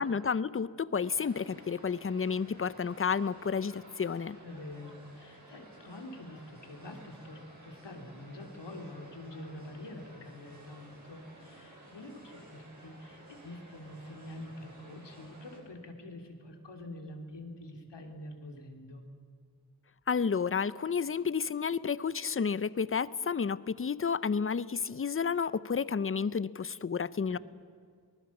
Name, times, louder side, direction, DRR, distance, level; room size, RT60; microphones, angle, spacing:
voice 1, 0.0-4.4 20.1-27.4, left 6 dB, 30° left, 18 dB, 0.6 m, -31 dB
sound 1, 1.0-15.6, right 1 dB, 45° right, 7.0 m, -54 dB
voice 2, 4.4-19.0 27.2-27.4, left 1 dB, 80° left, 3 dB, 2.9 m, -46 dB
23.5 x 19.5 x 7.2 m, 2.2 s
wide cardioid pair, 105°, 41 cm